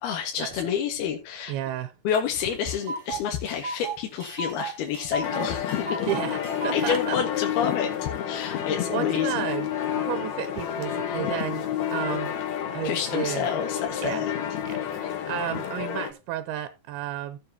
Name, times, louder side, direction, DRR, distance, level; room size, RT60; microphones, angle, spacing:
voice 1, 0.0-1.5 2.1-6.0 6.7-9.5 12.8-14.3, left 8 dB, 75° left, 3.5 m, -29 dB
voice 2, 1.5-1.9 6.0-7.2 8.6-9.7 10.0-12.3 12.7-13.5 14.0-14.2 14.6-17.4, right 12 dB, 80° right, 2.7 m, -32 dB
Tick, 2.1-2.2 2.5-7.0, right 4 dB, 45° right, 2.6 m, -35 dB
sound 1, 5.2-16.1, left 10 dB, 60° left, 2.1 m, -30 dB
17.0 x 7.5 x 2.8 m
omnidirectional pair, 4.5 m